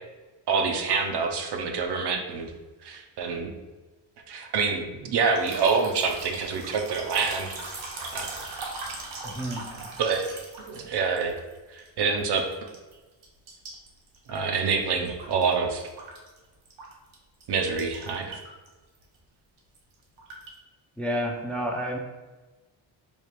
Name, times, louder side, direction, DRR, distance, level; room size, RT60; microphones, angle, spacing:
voice 1, 0.5-2.5 2.8-3.5 4.3-7.6 8.1-8.4 10.0-10.3 10.7-11.3 11.7-12.4 14.3-15.8 17.5-18.4, right 5 dB, 60° right, 4 dB, 0.7 m, -26 dB
sound 1, 5.3-11.9 12.2-12.9 13.2-15.5 15.8-17.2 17.4-17.5 17.8-18.7 19.0-19.2 19.6-20.6, right 3 dB, 80° right, 1.1 m, -40 dB
voice 2, 9.2-9.7 21.0-22.0, equal, 5° left, 0 dB, 0.5 m, -30 dB
3.4 x 2.3 x 4.4 m, 1.2 s
cardioid pair, 80°, 46 cm